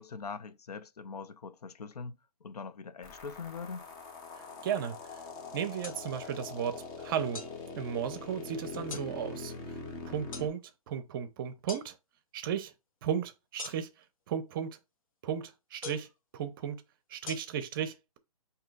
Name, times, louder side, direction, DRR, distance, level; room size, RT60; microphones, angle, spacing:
voice 1, 0.0-3.9 8.7-9.0, left 5 dB, 85° left, 0.5 m, -42 dB
sound 1, 3.0-10.5, left 4 dB, 20° left, 0.7 m, -43 dB
voice 2, 4.4-5.2 5.5-7.5 7.8-9.8 10.0-12.0 12.3-12.7 13.0-14.8 15.2-16.8 17.1-18.2, right 8 dB, 35° right, 0.6 m, -35 dB
sound 2, 5.8-6.0 7.3-7.5 8.9-9.1 10.3-10.5 11.7-11.9 13.6-14.0 15.8-16.1 17.3-17.4, left 5 dB, 60° left, 0.9 m, -41 dB
7.4 x 2.8 x 2.4 m
hypercardioid pair, 140°, 19 cm